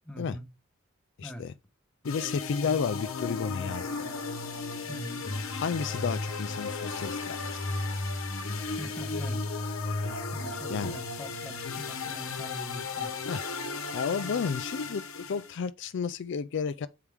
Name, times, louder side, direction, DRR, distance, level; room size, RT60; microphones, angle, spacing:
voice 1, 0.0-0.5 1.2-1.5 4.9-5.3 8.6-9.5 10.3-13.2, equal, 5° left, 0.8 m, -43 dB
voice 2, 1.2-1.5 2.0-3.9 5.5-7.4 7.7-7.8 10.7-11.0 13.3-13.4 13.9-16.9, left 6 dB, 60° left, 0.4 m, -32 dB
sound 1, 2.0-15.6, left 3 dB, 75° left, 1.0 m, -34 dB
7.2 x 4.7 x 3.4 m
head